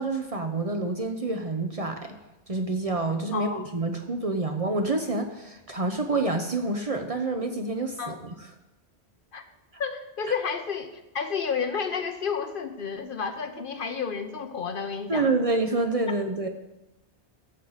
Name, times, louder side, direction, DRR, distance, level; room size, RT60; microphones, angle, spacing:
voice 1, 0.0-2.1 2.5-8.3 15.1-16.5, right 3 dB, 35° right, 4 dB, 0.8 m, -27 dB
voice 2, 3.3-3.7 8.0-8.2 9.3-9.4 9.8-15.3, left 6 dB, 55° left, 8 dB, 0.9 m, -31 dB
14.0 x 7.4 x 4.0 m, 0.96 s
omnidirectional pair, 1.1 m